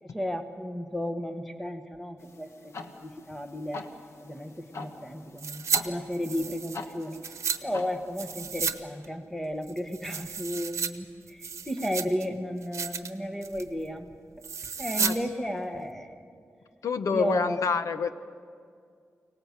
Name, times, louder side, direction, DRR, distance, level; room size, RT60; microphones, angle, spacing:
voice 1, 0.0-3.9 4.2-7.2 7.6-14.1 14.8-16.2 17.1-17.6, equal, 5° left, 6 dB, 1.3 m, -33 dB
sound 1, 2.2-8.4, left 4 dB, 60° left, 1.4 m, -44 dB
sound 2, 5.4-5.8 6.1-7.6 8.2-8.8 9.0-9.1 9.6-10.9 11.3-12.2 12.6-13.1 13.4-13.7 14.4-15.2 15.4-15.5, right 6 dB, 70° right, 1.0 m, -32 dB
voice 2, 16.8-18.1, left 5 dB, 85° left, 11 dB, 0.9 m, -27 dB
24.0 x 18.5 x 8.0 m, 2.2 s
wide cardioid pair, 170°, 5 cm